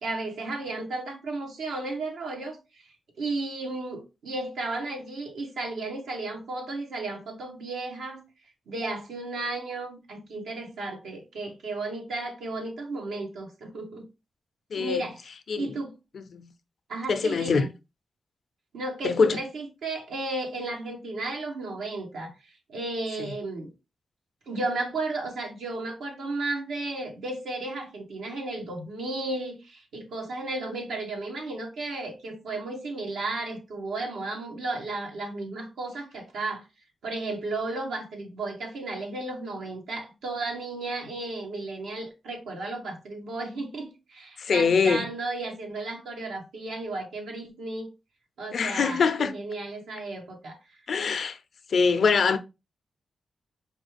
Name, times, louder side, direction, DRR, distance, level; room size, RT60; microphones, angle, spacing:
voice 1, 0.0-2.8 3.2-8.2 8.7-14.1 14.7-15.3 15.6-15.9 16.9-17.7 18.7-23.7 24.5-36.6 37.0-47.9 48.4-50.6, right 2 dB, 90° right, 1.1 m, -34 dB
voice 2, 14.7-15.1 15.5-15.7 16.1-16.5 17.1-17.7 19.0-19.4 23.2-23.3 44.4-45.1 48.5-49.3 50.9-51.4 51.7-52.4, left 5 dB, 70° left, 0.5 m, -24 dB
4.9 x 2.4 x 3.3 m
cardioid pair, 55°, 0 cm